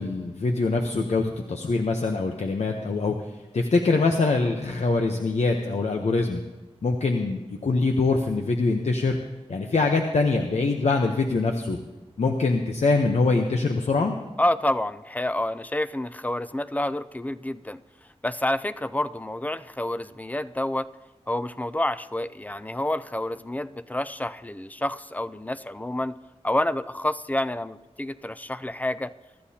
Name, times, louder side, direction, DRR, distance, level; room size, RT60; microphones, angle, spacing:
voice 1, 0.0-3.2 3.5-6.4 6.8-9.2 9.5-11.8 12.2-14.2, left 3 dB, 90° left, 3 dB, 0.9 m, -24 dB
voice 2, 14.4-17.8 18.2-20.9 21.3-26.1 26.4-29.1, left 1 dB, 15° left, 13 dB, 0.4 m, -28 dB
24.0 x 13.0 x 2.8 m, 1.1 s
wide cardioid pair, 90°, 11 cm